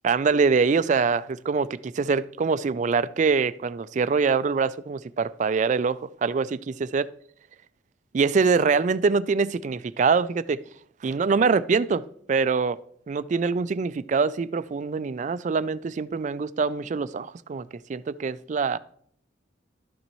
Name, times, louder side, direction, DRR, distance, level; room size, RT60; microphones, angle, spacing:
voice 1, 0.0-7.1 8.1-10.6 11.0-12.8 13.1-18.8, right 5 dB, 40° right, 0.3 m, -24 dB
12.5 x 6.8 x 3.0 m
head